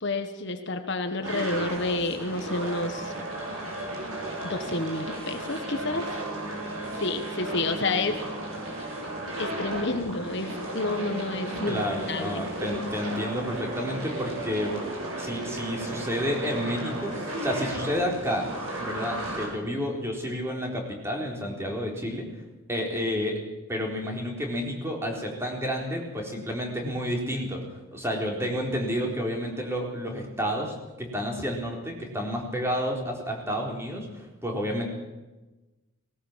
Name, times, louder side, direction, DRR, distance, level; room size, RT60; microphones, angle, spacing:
voice 1, 0.0-3.1 4.4-6.1 7.0-8.2 9.4-11.8 12.1-12.4, left 2 dB, 55° left, 7 dB, 1.4 m, -29 dB
sound 1, 1.2-19.5, right 1 dB, 85° right, 6.5 m, -34 dB
voice 2, 11.7-14.7 15.2-18.5 18.8-22.3 22.7-23.4 23.7-34.9, equal, 10° right, 0 dB, 4.0 m, -30 dB
19.0 x 18.0 x 7.5 m, 1.1 s
head